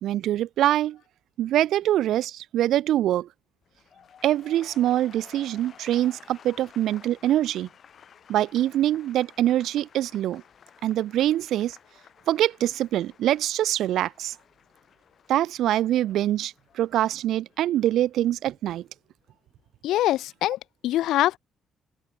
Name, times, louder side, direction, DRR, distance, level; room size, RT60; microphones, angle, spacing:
voice 1, 0.0-1.0 1.4-3.3 4.2-7.7 8.3-10.4 10.8-11.8 12.3-14.3 15.3-18.8, right 12 dB, 80° right, 0.4 m, -24 dB
sound 1, 3.6-19.7 20.0-20.4, left 8 dB, 55° left, 6.0 m, -54 dB
voice 2, 19.8-21.4, left 14 dB, 85° left, 0.8 m, -24 dB
open air
cardioid pair, 90°, 0 cm